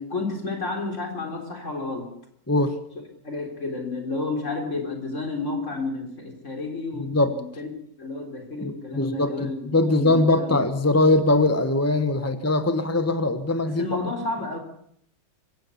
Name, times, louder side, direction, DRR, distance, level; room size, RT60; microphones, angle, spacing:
voice 1, 0.0-2.1 3.2-7.7 8.0-9.7 10.0-10.6 12.2-12.3 13.6-14.6, left 3 dB, 35° left, 3 dB, 4.2 m, -31 dB
voice 2, 7.0-7.3 8.6-13.9, left 2 dB, 15° left, 11 dB, 0.6 m, -21 dB
25.0 x 16.0 x 7.2 m, 0.69 s
omnidirectional pair, 2.2 m